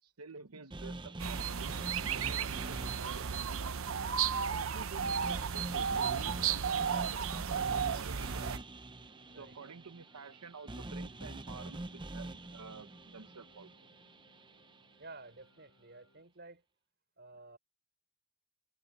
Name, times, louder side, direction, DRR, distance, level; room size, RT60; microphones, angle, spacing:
voice 1, 0.0-1.7 2.1-3.8 4.4-8.5 9.3-13.7, right 4 dB, 85° right, 1.0 m, -50 dB
sound 1, 0.7-14.9, right 2 dB, 20° right, 0.7 m, -45 dB
sound 2, 1.2-8.6, right 7 dB, 65° right, 0.7 m, -34 dB
sound 3, 9.0-16.2, left 1 dB, 60° left, 7.5 m, -68 dB
voice 2, 15.0-16.6 17.2-17.6, right 3 dB, 45° right, 5.2 m, -52 dB
head